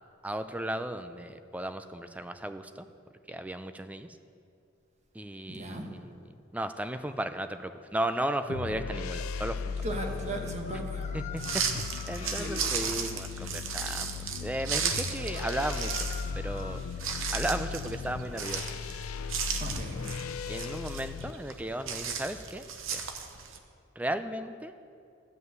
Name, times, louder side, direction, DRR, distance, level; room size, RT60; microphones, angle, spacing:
voice 1, 0.2-2.9 3.3-4.2 5.1-6.2 6.5-9.7 11.1-11.4 11.7-16.1 16.3-16.8 17.3-18.7 20.5-22.6 22.9-23.0 24.0-24.7, right 1 dB, 5° right, 10 dB, 0.4 m, -35 dB
voice 2, 5.5-5.8 9.8-11.0 12.2-12.8 19.6-20.0, right 1 dB, 35° right, 3 dB, 1.2 m, -37 dB
sound 1, 7.0-7.2 10.6-12.4 15.3-17.1, left 7 dB, 35° left, 0.7 m, -47 dB
sound 2, 8.5-21.3, left 5 dB, 85° left, 0.4 m, -37 dB
sound 3, 11.4-23.6, right 6 dB, 70° right, 0.9 m, -36 dB
12.5 x 5.5 x 7.8 m, 2.5 s
head